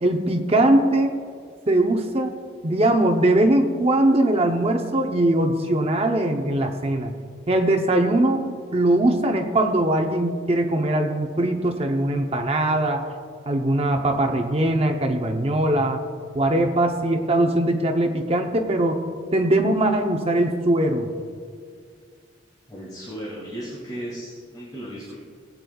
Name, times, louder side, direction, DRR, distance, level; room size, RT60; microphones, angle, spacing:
voice 1, 0.0-1.1 1.7-2.4 2.6-7.1 7.5-8.4 8.7-13.0 13.5-16.0 16.3-19.0 19.3-21.1, right 1 dB, 30° right, 4 dB, 0.7 m, -21 dB
voice 2, 22.7-25.3, equal, 20° left, -8 dB, 2.3 m, -35 dB
18.5 x 8.5 x 2.3 m, 2.1 s
head